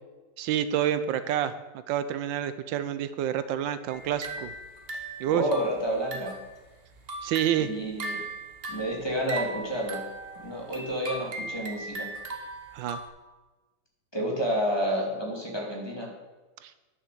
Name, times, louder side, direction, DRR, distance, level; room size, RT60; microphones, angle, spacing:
voice 1, 0.4-1.5 1.9-4.5 5.2-5.4 7.2-7.7 12.7-13.0 16.6-16.7, right 10 dB, 85° right, 12 dB, 1.3 m, -28 dB
sound 1, 3.9-6.5 6.9-13.1, right 2 dB, 35° right, 1.2 m, -38 dB
voice 2, 5.3-6.4 7.6-8.3 8.7-10.0 10.4-12.1 14.1-16.1, equal, 15° left, -2 dB, 2.2 m, -30 dB
10.0 x 7.1 x 6.8 m, 1.2 s
omnidirectional pair, 2.0 m